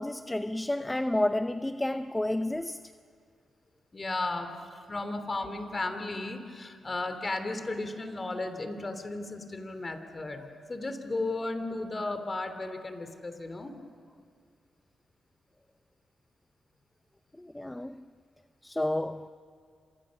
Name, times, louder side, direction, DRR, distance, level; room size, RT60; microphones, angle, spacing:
voice 1, 0.0-2.9 17.4-18.0 18.6-19.3, left 1 dB, 10° left, 0.6 m, -30 dB
voice 2, 3.9-13.7, left 2 dB, 30° left, 3.0 m, -35 dB
30.0 x 26.5 x 6.4 m
cardioid pair, 75°, 0 cm